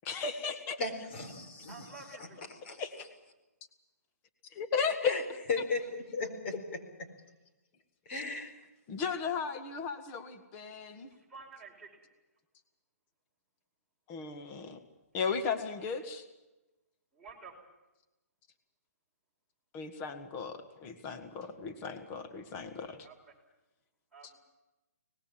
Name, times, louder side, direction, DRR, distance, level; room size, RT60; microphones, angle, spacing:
voice 1, 0.1-0.8 2.8-3.1 4.5-5.4 8.1-8.2 8.9-11.1 14.1-14.8 15.1-16.3 19.7-23.1 24.2-24.3, left 5 dB, 20° left, 7 dB, 1.8 m, -35 dB
voice 2, 0.8-2.8 5.0-5.2 5.5-6.5 8.1-8.5, left 3 dB, 45° left, 6 dB, 4.7 m, -36 dB
voice 3, 1.7-2.4 11.3-12.0 17.1-17.5 23.0-23.1 24.1-24.4, right 4 dB, ahead, -5 dB, 5.3 m, -50 dB
24.5 x 20.0 x 7.4 m, 1.0 s
hypercardioid pair, 155°, 9 cm